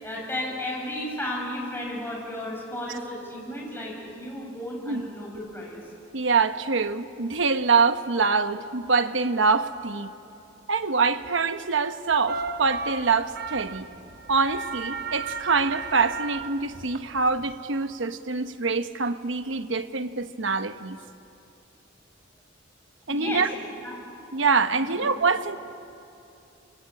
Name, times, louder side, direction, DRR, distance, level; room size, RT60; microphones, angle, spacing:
voice 1, 0.0-5.8 23.1-23.5 23.8-24.0 24.8-25.1, left 1 dB, 10° left, 6.6 m, -34 dB
voice 2, 6.1-10.1 10.7-13.9 14.3-21.0 23.1-23.5 24.3-25.6, right 4 dB, 75° right, 1.1 m, -25 dB
sound 1, 12.3-17.5, right 4 dB, 55° right, 1.1 m, -35 dB
27.5 x 24.0 x 8.9 m
head